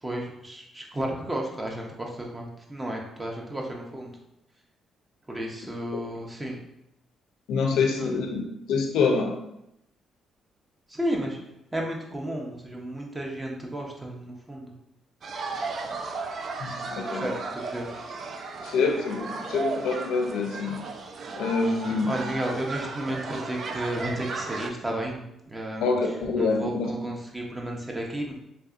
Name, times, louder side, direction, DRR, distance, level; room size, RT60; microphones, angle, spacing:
voice 1, 0.0-4.2 5.3-6.6 7.9-8.1 10.9-11.4 11.7-14.7 17.1-17.9 21.6-21.8 22.1-25.9 26.4-28.3, right 1 dB, 15° right, 0 dB, 0.7 m, -33 dB
voice 2, 7.5-8.4 8.7-9.3 16.6-17.3 18.6-20.8 21.3-22.1 25.8-26.9, left 4 dB, 85° left, 3 dB, 0.5 m, -26 dB
sound 1, 15.2-24.7, right 4 dB, 50° right, 0.3 m, -35 dB
3.3 x 2.6 x 2.4 m, 0.82 s
cardioid pair, 90°, 0 cm